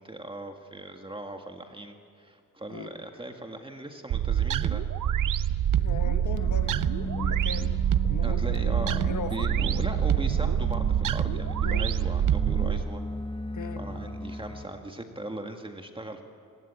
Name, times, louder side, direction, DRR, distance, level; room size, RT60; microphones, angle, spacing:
voice 1, 0.0-4.9 8.2-13.0 13.8-16.2, right 1 dB, 15° right, 4 dB, 1.9 m, -39 dB
sound 1, 4.1-12.8, right 10 dB, 75° right, 0.7 m, -26 dB
voice 2, 5.8-7.8 8.0-9.8 11.6-11.9 13.5-13.8, left 5 dB, 65° left, 7 dB, 1.6 m, -39 dB
sound 2, 6.3-14.7, left 1 dB, 15° left, 1.8 m, -37 dB
26.0 x 18.5 x 8.5 m, 2.4 s
cardioid pair, 100°, 32 cm